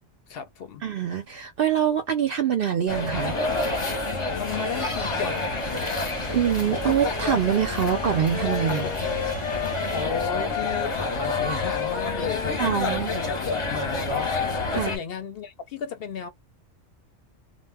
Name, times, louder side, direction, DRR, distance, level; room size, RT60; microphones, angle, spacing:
voice 1, 0.3-0.8 4.3-5.9 8.6-9.0 9.9-12.9 13.1-16.3, left 6 dB, 60° left, 0.7 m, -34 dB
voice 2, 0.8-3.4 6.3-8.8 12.6-13.1 14.7-14.9, right 9 dB, 60° right, 0.6 m, -24 dB
sound 1, 2.9-15.0, left 2 dB, 30° left, 0.7 m, -29 dB
sound 2, 4.5-10.1, right 1 dB, 15° right, 0.6 m, -41 dB
sound 3, 7.6-13.4, left 11 dB, 85° left, 1.0 m, -33 dB
2.2 x 2.1 x 3.3 m
omnidirectional pair, 1.3 m